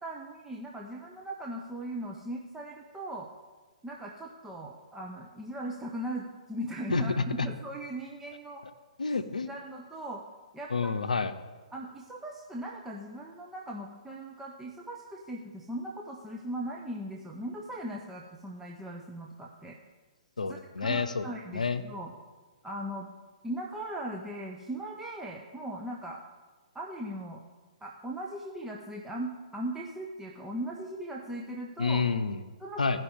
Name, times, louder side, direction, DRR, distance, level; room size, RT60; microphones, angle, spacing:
voice 1, 0.0-3.3 3.8-8.6 9.4-10.2 10.5-10.9 11.7-19.8 20.5-22.1 22.6-23.1 23.4-26.2 26.7-27.4 27.8-32.0 32.6-33.0, right 1 dB, 10° right, -1 dB, 0.7 m, -39 dB
voice 2, 6.9-7.5 9.0-9.5 10.7-11.3 20.4-21.2 21.5-21.8 31.8-32.4 32.8-33.0, left 4 dB, 85° left, 10 dB, 0.6 m, -28 dB
15.5 x 5.5 x 3.6 m, 1.3 s
figure-of-eight pair, 125°, 4 cm